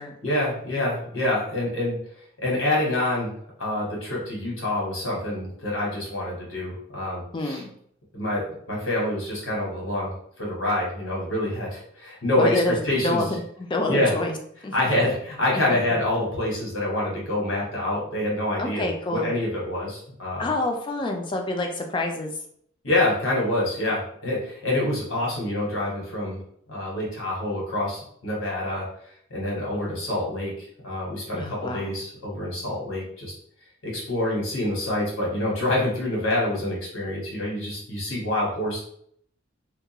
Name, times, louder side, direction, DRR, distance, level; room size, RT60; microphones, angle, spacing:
voice 1, 0.2-2.0 2.4-3.3 3.6-7.6 8.1-12.5 12.8-13.2 13.9-14.1 14.7-20.5 22.8-26.4 26.7-28.9 29.3-33.3 33.8-38.8, left 1 dB, 80° left, -4 dB, 1.2 m, -26 dB
voice 2, 7.3-7.7 12.4-14.3 14.6-14.7 18.6-19.3 20.4-22.3 31.3-31.9, left 2 dB, 25° left, 3 dB, 0.3 m, -27 dB
2.3 x 2.2 x 2.8 m, 0.66 s
head